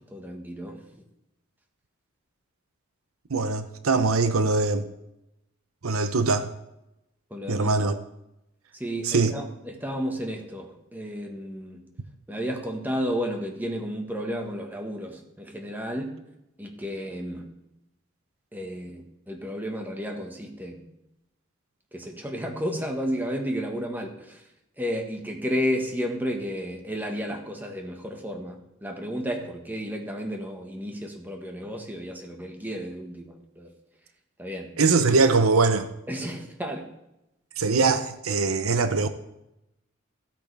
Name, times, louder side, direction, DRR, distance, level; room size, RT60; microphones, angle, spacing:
voice 1, 0.1-0.8 7.3-7.7 8.8-11.8 12.3-16.1 16.6-17.5 18.5-20.8 21.9-24.4 24.8-33.7 34.4-34.7 36.1-36.9, equal, 10° right, 1.4 m, -32 dB
voice 2, 3.3-4.9 5.8-6.5 7.5-7.9 9.0-9.3 34.8-35.9 37.6-39.1, right 4 dB, 90° right, 0.8 m, -22 dB
16.0 x 8.5 x 3.4 m
head